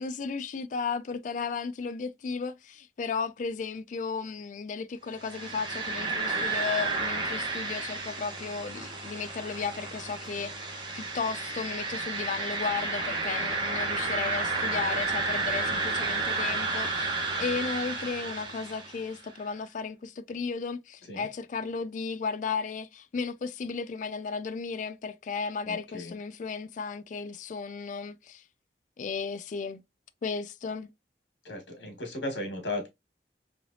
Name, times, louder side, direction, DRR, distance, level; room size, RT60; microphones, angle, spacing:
voice 1, 0.0-28.4 29.0-29.8 30.2-30.9, left 5 dB, 45° left, 0.3 m, -34 dB
sound 1, 5.2-19.1, right 3 dB, 25° right, 1.0 m, -32 dB
voice 2, 25.6-26.1 31.4-32.9, left 1 dB, 75° left, 1.5 m, -36 dB
3.2 x 2.8 x 2.6 m
head